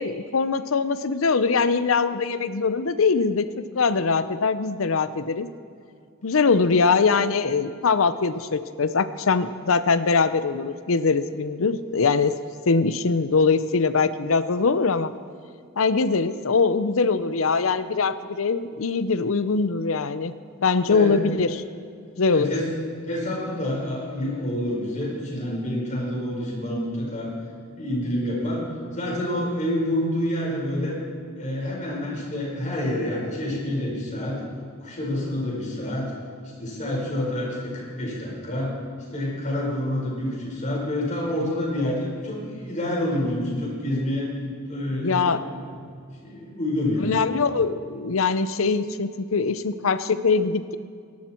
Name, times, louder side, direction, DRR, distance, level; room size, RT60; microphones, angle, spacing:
voice 1, 0.0-5.5 6.2-12.4 12.6-15.1 15.8-20.3 20.6-21.6 22.2-22.5 45.0-45.4 47.0-50.8, left 4 dB, 75° left, 13 dB, 0.7 m, -22 dB
voice 2, 20.8-21.2 22.3-22.7 23.0-27.3 27.7-28.6 28.9-31.0 31.3-34.4 34.8-36.1 36.6-38.8 39.1-44.3 44.7-45.7 46.2-47.2, left 1 dB, 35° left, -4 dB, 4.9 m, -28 dB
22.5 x 11.5 x 4.5 m, 2.3 s
head